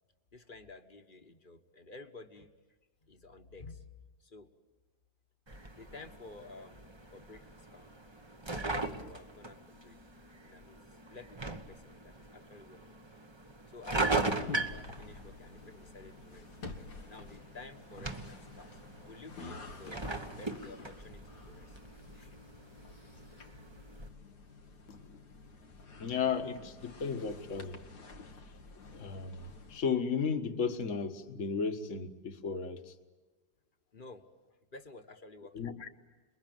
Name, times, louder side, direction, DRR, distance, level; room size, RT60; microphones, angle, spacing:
voice 1, 0.3-2.5 3.0-3.9 4.2-4.5 5.7-6.9 7.1-10.0 10.4-13.0 13.7-16.5 17.1-21.8 22.1-22.4 33.9-34.2 34.7-35.7, left 3 dB, 35° left, 7 dB, 1.5 m, -51 dB
sound 1, 5.5-24.1, right 3 dB, 20° right, 1.2 m, -40 dB
sound 2, 14.1-29.8, left 4 dB, 90° left, 2.2 m, -50 dB
voice 2, 24.9-25.2 25.5-25.6 25.9-27.8 28.9-32.9 35.5-35.9, left 6 dB, 50° left, 8 dB, 1.7 m, -35 dB
28.5 x 22.0 x 9.3 m, 1.2 s
omnidirectional pair, 1.7 m